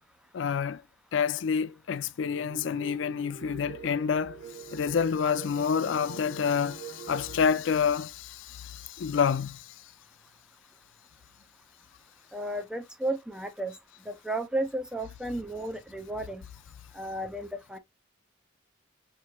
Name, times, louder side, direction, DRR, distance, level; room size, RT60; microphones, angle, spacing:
voice 1, 0.3-0.8 1.1-4.4 4.7-9.7, left 6 dB, 70° left, 0.4 m, -28 dB
sound 1, 2.3-7.6, right 5 dB, 90° right, 1.0 m, -44 dB
voice 2, 12.3-13.8 14.1-16.4 16.9-17.8, right 1 dB, 5° right, 0.6 m, -33 dB
5.5 x 3.1 x 2.3 m
head